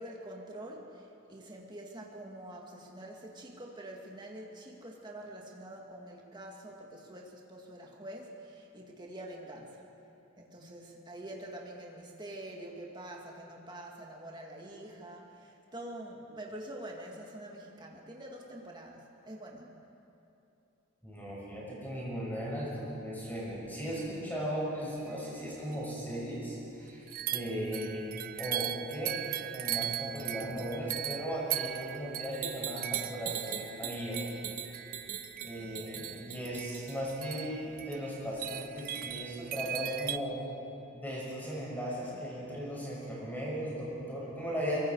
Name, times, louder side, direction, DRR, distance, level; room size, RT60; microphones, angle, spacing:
voice 1, 0.0-9.8 10.4-19.7, right 1 dB, 20° right, -1 dB, 2.2 m, -46 dB
voice 2, 21.0-28.1 28.4-29.2 29.5-34.2 35.4-40.4 40.9-44.8, equal, 10° left, -6 dB, 6.6 m, -37 dB
sound 1, 25.4-25.5 25.7-25.8 27.1-40.2, right 12 dB, 40° right, 0.5 m, -39 dB
sound 2, 32.3-37.1, right 9 dB, 85° right, 1.1 m, -40 dB
23.5 x 23.0 x 4.9 m, 2.9 s
head